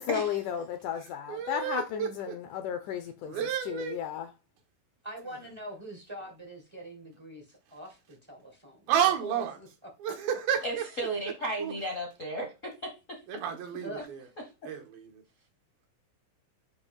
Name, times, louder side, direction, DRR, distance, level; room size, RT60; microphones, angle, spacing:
voice 1, 0.0-3.4 3.6-4.3, left 9 dB, 80° left, 1.8 m, -34 dB
voice 2, 1.3-2.4 3.2-4.0 8.9-9.6 10.0-10.9 11.6-11.7 13.3-14.3 14.7-15.2, right 9 dB, 85° right, 3.1 m, -31 dB
voice 3, 5.0-8.9 9.2-9.4 13.8-14.1, right 1 dB, 50° right, 0.3 m, -44 dB
voice 4, 10.6-13.2 14.0-14.1, right 1 dB, 60° left, 0.8 m, -34 dB
8.0 x 2.9 x 5.3 m
omnidirectional pair, 4.2 m